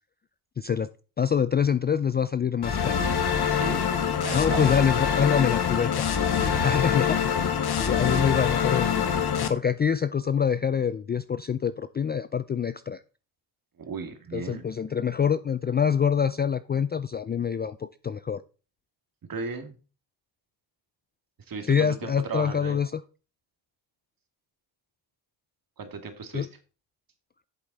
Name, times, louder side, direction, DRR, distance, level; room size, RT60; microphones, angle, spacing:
voice 1, 0.6-0.9 1.2-3.0 4.3-6.1 6.4-7.5 7.8-13.0 14.3-18.4 21.7-23.0 26.3-26.5, left 7 dB, 25° left, 14 dB, 0.3 m, -26 dB
sound 1, 2.6-9.5, left 7 dB, 55° left, 1.4 m, -25 dB
voice 2, 3.5-3.9 4.2-4.8 13.8-14.7 19.3-19.7 21.5-22.8 25.8-26.5, right 5 dB, 45° right, 7 dB, 2.0 m, -35 dB
8.2 x 7.2 x 4.0 m, 0.34 s
cardioid pair, 80°, 46 cm